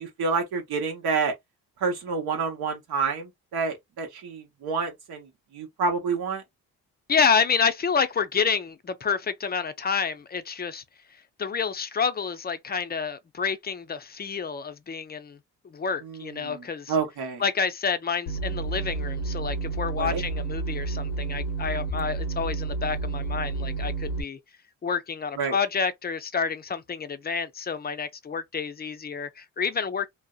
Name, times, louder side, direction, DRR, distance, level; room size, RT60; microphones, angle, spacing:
voice 1, 0.0-1.3 1.8-6.4 16.0-17.4 20.0-20.2 25.4-25.6, right 4 dB, 75° right, 0.9 m, -29 dB
voice 2, 7.1-10.8 11.4-15.4 15.6-16.9 17.4-24.4 24.8-30.1, left 6 dB, 25° left, 0.4 m, -28 dB
sound 1, 18.3-24.2, right 4 dB, 90° left, 0.6 m, -30 dB
2.6 x 2.0 x 2.3 m
supercardioid pair, 60°, 38 cm